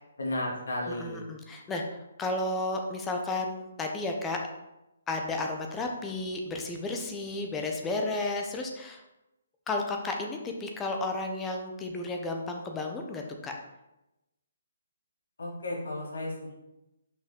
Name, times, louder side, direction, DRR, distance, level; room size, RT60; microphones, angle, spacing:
voice 1, 0.2-1.2 15.4-16.5, left 1 dB, 85° left, -3 dB, 2.3 m, -33 dB
voice 2, 0.8-4.4 5.1-9.0 9.7-13.5, left 2 dB, 10° left, 2 dB, 0.6 m, -33 dB
5.8 x 5.4 x 3.6 m, 0.94 s
hypercardioid pair, 170°, 0 cm